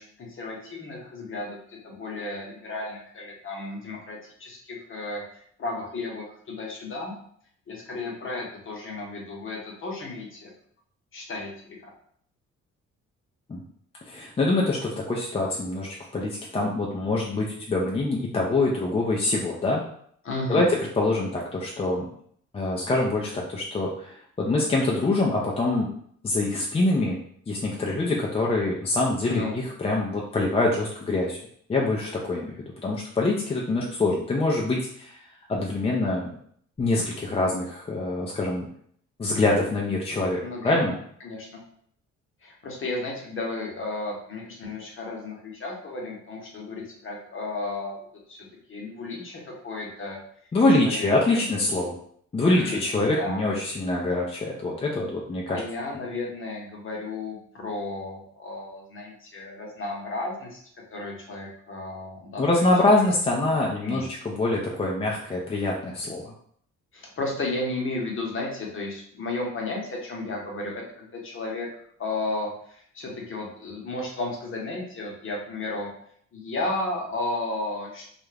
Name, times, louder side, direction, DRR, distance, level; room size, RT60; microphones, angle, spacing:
voice 1, 0.0-7.1 7.7-10.5 11.1-11.9 20.2-20.7 29.3-29.6 40.4-40.9 41.2-41.6 42.4-48.0 48.3-50.5 50.8-51.5 52.4-53.4 55.5-60.6 60.9-63.1 63.8-64.1 66.9-71.7 72.0-75.9 76.3-78.0, left 2 dB, 45° left, -1 dB, 0.9 m, -33 dB
voice 2, 14.1-19.8 20.5-22.0 22.5-25.9 26.2-27.2 27.5-31.4 31.7-32.6 32.8-36.3 36.8-38.7 39.2-40.9 50.5-52.0 52.3-55.6 62.4-66.3, left 2 dB, 20° left, -2 dB, 0.4 m, -25 dB
2.4 x 2.1 x 3.2 m, 0.63 s
cardioid pair, 90°, 30 cm